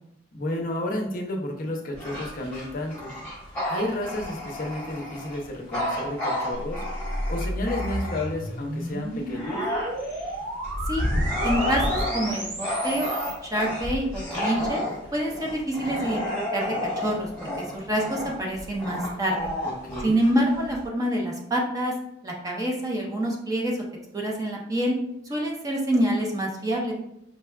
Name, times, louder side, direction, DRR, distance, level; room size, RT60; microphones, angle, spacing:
voice 1, 0.3-3.1 3.6-6.8 7.3-9.6 19.6-20.2, left 1 dB, 45° left, 1 dB, 0.5 m, -31 dB
Bark / Growling, 1.9-8.5 9.0-20.9, left 1 dB, 10° left, 1.0 m, -31 dB
sound 1, 6.5-13.4, right 1 dB, 80° right, 1.3 m, -33 dB
voice 2, 11.4-13.1 13.4-14.8 15.1-16.2 16.5-17.3 17.6-19.5 20.0-21.9 22.2-23.8 24.1-25.0 25.3-26.9, right 1 dB, 20° right, -1 dB, 0.5 m, -26 dB
5.1 x 2.3 x 2.2 m, 0.82 s
head